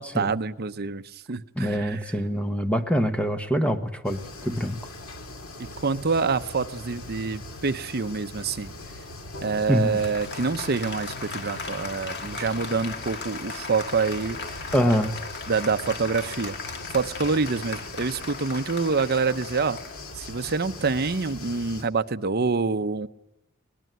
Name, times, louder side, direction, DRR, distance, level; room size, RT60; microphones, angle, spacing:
voice 1, 0.0-2.0 5.6-8.7 9.4-14.7 15.5-16.6 16.9-19.8 20.1-23.1, right 4 dB, 50° right, 11 dB, 0.7 m, -26 dB
voice 2, 1.5-4.8 9.7-10.0 14.7-15.1, equal, 5° left, 7 dB, 1.4 m, -24 dB
sound 1, 4.0-21.8, left 2 dB, 70° left, 2.5 m, -41 dB
Applause, 9.3-21.2, left 4 dB, 50° left, 2.0 m, -38 dB
22.0 x 19.5 x 9.2 m, 0.96 s
head